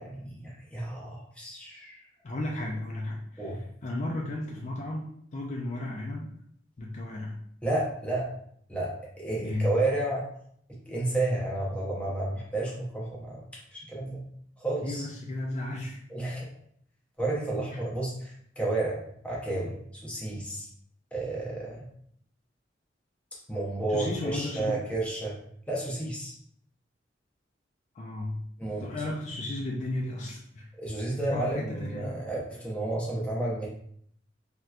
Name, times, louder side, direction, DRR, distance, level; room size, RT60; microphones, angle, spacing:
voice 1, 0.0-2.0 3.4-3.6 7.6-8.3 8.7-10.3 10.9-13.4 13.7-14.2 14.6-15.1 16.1-16.5 17.2-20.7 21.1-21.9 23.5-25.4 25.7-26.3 28.6-28.9 30.8-33.7, right 2 dB, 5° left, -4 dB, 0.8 m, -31 dB
voice 2, 2.2-6.3 6.8-7.4 9.4-10.0 14.8-16.0 23.9-24.9 27.9-28.5 28.8-30.7 31.1-32.3, left 1 dB, 40° left, -1 dB, 0.4 m, -34 dB
3.3 x 2.9 x 2.4 m, 0.67 s
head